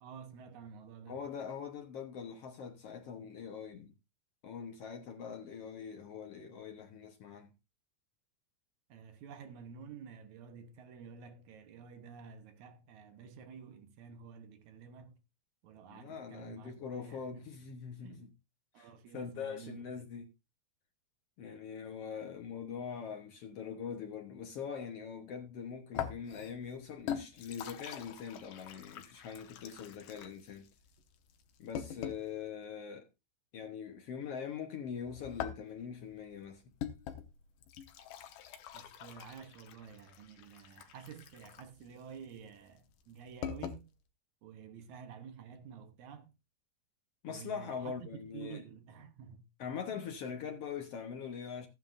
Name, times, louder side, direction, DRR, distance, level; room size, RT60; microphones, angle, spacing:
voice 1, 0.0-1.2 8.9-15.2 15.6-17.5 18.0-18.3 18.7-20.1 38.7-43.9 44.4-46.3 47.3-49.5 49.9-50.1, right 7 dB, 70° right, 2.3 m, -51 dB
voice 2, 1.1-3.9 4.4-7.5 15.9-18.3 18.8-20.3 21.4-30.7 31.6-33.1 33.5-36.6 47.2-48.6 49.6-51.7, left 7 dB, 60° left, 1.8 m, -43 dB
sound 1, 25.9-32.4 35.1-43.8, left 9 dB, 90° left, 2.7 m, -44 dB
14.5 x 9.2 x 2.5 m
omnidirectional pair, 3.6 m